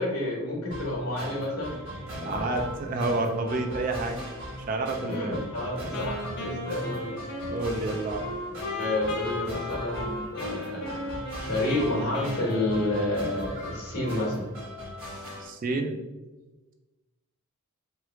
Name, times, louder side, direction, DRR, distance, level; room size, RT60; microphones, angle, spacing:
voice 1, 0.0-1.8 2.2-2.3 5.1-7.2 8.8-11.0 11.4-14.5, left 1 dB, 85° left, -2 dB, 1.1 m, -29 dB
sound 1, 0.7-15.5, equal, 55° right, 1.3 m, -39 dB
voice 2, 2.2-4.2 4.7-5.4 6.9-7.0 7.5-8.3 15.4-16.0, right 2 dB, 35° right, 4 dB, 0.3 m, -29 dB
Wind instrument woodwind instrument, 5.9-13.8, left 1 dB, 50° left, 0.6 m, -36 dB
3.0 x 2.2 x 3.4 m, 1.1 s
head